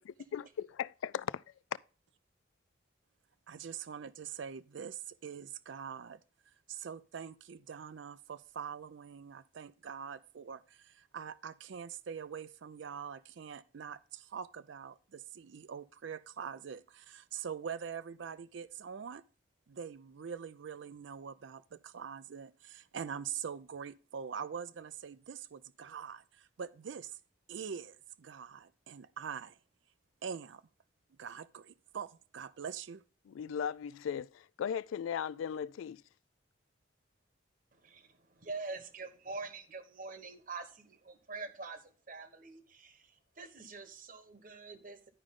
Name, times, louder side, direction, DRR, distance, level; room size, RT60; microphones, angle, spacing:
voice 1, 0.0-1.4 33.3-36.0, left 8 dB, 90° left, 0.3 m, -37 dB
voice 2, 3.5-6.2 6.7-19.2 19.7-27.2 27.5-29.6 30.2-30.6 31.2-33.0, right 7 dB, 70° right, 0.4 m, -44 dB
voice 3, 37.7-45.1, right 3 dB, 45° right, 1.2 m, -45 dB
11.0 x 5.0 x 3.7 m
head